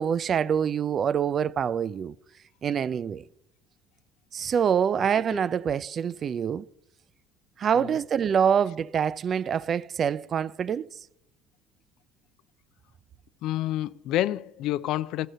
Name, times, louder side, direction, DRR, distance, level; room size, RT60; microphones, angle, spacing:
voice 1, 0.0-2.1 2.6-3.2 4.3-6.7 7.6-10.9, right 8 dB, 40° right, 0.3 m, -25 dB
voice 2, 13.4-15.3, left 14 dB, 65° left, 0.3 m, -29 dB
13.5 x 6.3 x 6.6 m
cardioid pair, 115°, 0 cm